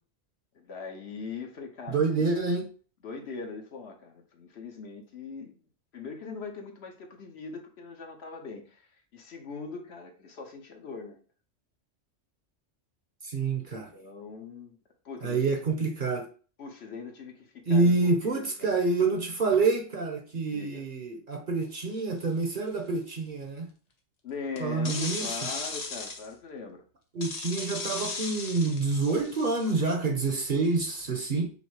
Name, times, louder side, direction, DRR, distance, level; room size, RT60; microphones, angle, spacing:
voice 1, 0.5-2.2 3.0-5.6 5.9-8.9 9.1-11.2 13.9-14.8 15.0-15.5 16.6-17.9 18.2-18.7 20.5-20.8 24.2-26.8, left 5 dB, 60° left, 1.1 m, -41 dB
voice 2, 1.9-2.7 13.2-13.9 15.2-16.3 17.7-23.7 24.6-25.3 27.1-31.5, right 3 dB, 45° right, 0.9 m, -27 dB
sound 1, 21.9-22.2 24.6-26.3 27.2-29.8, left 3 dB, 40° left, 0.7 m, -36 dB
5.5 x 2.1 x 4.6 m
omnidirectional pair, 1.3 m